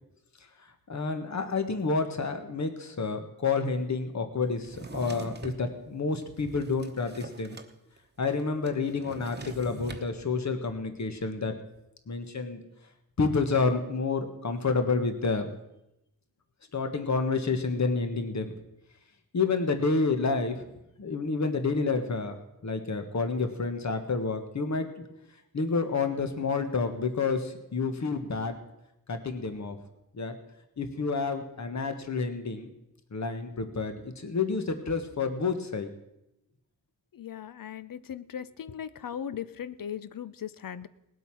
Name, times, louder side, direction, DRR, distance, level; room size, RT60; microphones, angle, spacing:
voice 1, 0.9-7.6 8.2-11.5 12.1-12.6 13.2-15.5 16.7-18.5 19.3-20.6 21.0-24.9 25.5-28.6 29.1-29.8 30.1-30.3 30.8-32.7 33.1-35.9, left 4 dB, 50° left, 7 dB, 1.5 m, -29 dB
Drawer open or close, 4.6-5.6 6.2-7.7 8.0-8.1 8.3-10.1, right 3 dB, 30° right, 1.0 m, -43 dB
voice 2, 37.1-40.9, left 9 dB, 70° left, 15 dB, 0.7 m, -38 dB
19.0 x 8.1 x 6.1 m, 0.87 s
wide cardioid pair, 120°, 34 cm